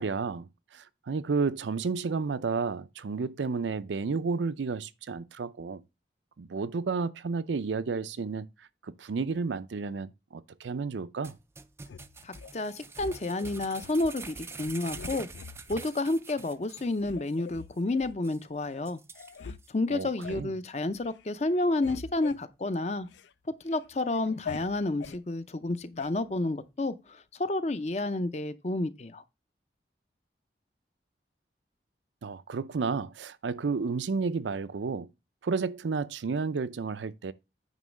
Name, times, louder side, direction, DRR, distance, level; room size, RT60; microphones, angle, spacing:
voice 1, 0.0-5.8 6.4-8.5 8.8-11.4 19.9-20.5 32.2-35.1 35.4-37.3, right 4 dB, 85° right, 0.5 m, -32 dB
sound 1, 11.2-17.0 17.3-17.4 17.8-17.9 18.2-18.4 18.9-19.7 20.2-20.3, right 4 dB, 15° right, 0.3 m, -45 dB
sound 2, 11.9-12.5 13.0-14.0 14.4-14.6 14.9-15.9 16.4-16.5 17.0-18.2 18.8-18.9 19.1-19.6 19.9-20.5 21.0-21.2 21.5-23.3 23.7-25.2 26.0-26.1, left 5 dB, 85° left, 0.4 m, -43 dB
voice 2, 12.2-15.3 15.7-19.0 19.7-23.1 23.6-29.2, left 2 dB, 35° left, 0.6 m, -30 dB
9.2 x 3.1 x 6.3 m
head